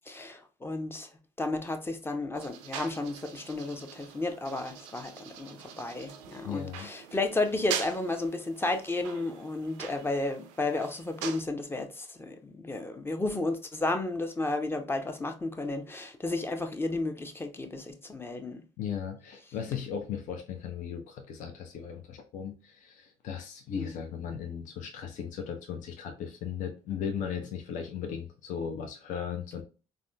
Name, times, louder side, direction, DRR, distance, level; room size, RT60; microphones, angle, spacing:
voice 1, 0.1-1.1 1.4-18.6 23.8-23.9, left 2 dB, 15° left, 0.6 m, -33 dB
sound 1, 2.3-11.4, right 9 dB, 85° right, 0.4 m, -42 dB
voice 2, 6.4-6.9 18.8-29.6, left 7 dB, 60° left, 0.6 m, -37 dB
3.6 x 2.1 x 2.2 m
hypercardioid pair, 60°, 15 cm